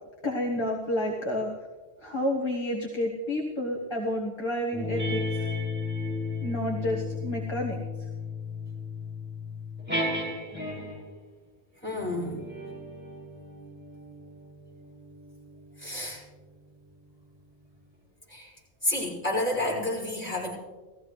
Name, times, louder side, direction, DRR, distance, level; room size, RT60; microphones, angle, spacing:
voice 1, 0.2-1.5 2.0-5.2 6.4-7.8, left 1 dB, 25° left, -2 dB, 1.5 m, -30 dB
sound 1, 4.7-11.1 11.9-16.8, left 3 dB, 10° right, 5.5 m, -35 dB
voice 2, 11.8-12.4 15.8-16.2 18.3-18.5 18.8-20.6, left 1 dB, 10° left, -7 dB, 5.6 m, -30 dB
19.0 x 15.0 x 3.2 m, 1.3 s
omnidirectional pair, 1.1 m